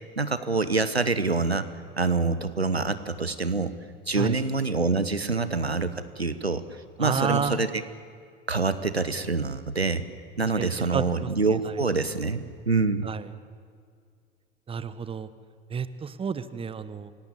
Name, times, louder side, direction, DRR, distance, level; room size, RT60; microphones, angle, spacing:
voice 1, 0.2-1.7 2.0-3.7 4.1-6.6 7.0-7.8 8.5-10.0 10.4-13.1, right 3 dB, 90° right, 13 dB, 1.0 m, -26 dB
voice 2, 7.0-7.6 10.4-11.8 13.0-13.3 14.7-15.3 15.7-17.1, right 6 dB, 20° right, 15 dB, 1.1 m, -31 dB
27.5 x 17.5 x 8.5 m, 2.1 s
figure-of-eight pair, 75°, 31 cm